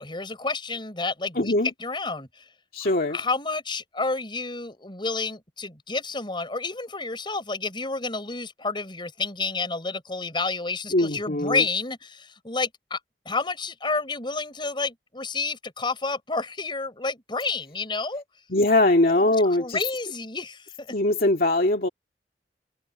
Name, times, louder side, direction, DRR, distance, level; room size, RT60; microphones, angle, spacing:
voice 1, 0.0-2.4 3.1-13.0 13.2-18.2 19.1-20.9, left 3 dB, 30° left, 4.7 m, -30 dB
voice 2, 1.4-1.7 2.7-3.2 10.9-11.6 18.5-19.8 20.9-21.9, left 2 dB, 55° left, 2.2 m, -21 dB
head